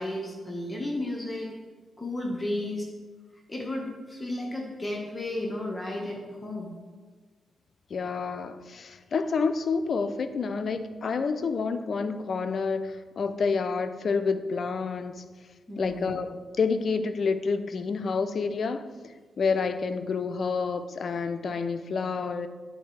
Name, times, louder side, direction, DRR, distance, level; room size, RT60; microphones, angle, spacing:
voice 1, 0.0-1.5 2.0-2.9 3.5-6.7 15.7-16.1, left 1 dB, 25° left, -1 dB, 1.2 m, -33 dB
voice 2, 7.9-15.2 15.8-18.9 19.4-22.5, left 5 dB, 60° left, 10 dB, 0.4 m, -28 dB
10.0 x 4.3 x 3.2 m, 1.4 s
cardioid pair, 70°, 0 cm